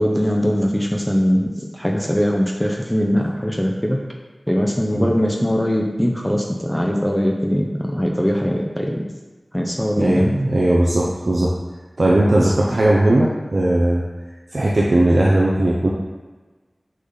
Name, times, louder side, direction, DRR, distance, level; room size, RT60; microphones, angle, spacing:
voice 1, 0.0-4.0 4.5-9.0 9.5-10.3 12.3-12.5, equal, 10° left, 0 dB, 0.7 m, -21 dB
voice 2, 10.0-11.5 12.0-14.0 14.5-15.9, right 1 dB, 70° right, -4 dB, 0.7 m, -17 dB
6.3 x 4.1 x 4.0 m, 1.3 s
wide cardioid pair, 50°, 0 cm